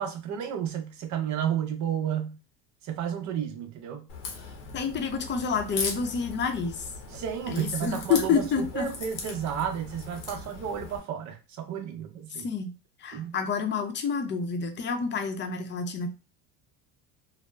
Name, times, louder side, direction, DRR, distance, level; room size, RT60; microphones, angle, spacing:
voice 1, 0.0-2.4 2.8-4.1 7.1-12.5 13.1-13.4, right 8 dB, 55° right, 0.7 m, -32 dB
Crack, 4.1-11.0, left 4 dB, 90° left, 0.8 m, -38 dB
voice 2, 4.7-6.8 7.5-8.9 12.4-12.7 13.0-16.1, left 6 dB, 30° left, 0.6 m, -28 dB
2.7 x 2.1 x 2.2 m
supercardioid pair, 90°, 35 cm